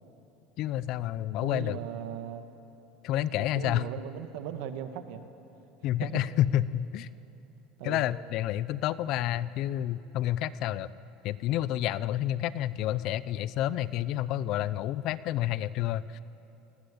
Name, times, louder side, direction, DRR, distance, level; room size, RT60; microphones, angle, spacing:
voice 1, 0.6-1.8 3.0-3.8 5.8-7.1 7.8-10.9 11.2-16.2, left 13 dB, 55° left, 17 dB, 0.7 m, -29 dB
voice 2, 1.4-2.5 3.4-5.2 6.0-6.1 7.8-8.1, right 9 dB, 75° right, 8 dB, 1.8 m, -38 dB
28.0 x 19.5 x 8.7 m, 3.0 s
supercardioid pair, 135°, 0 cm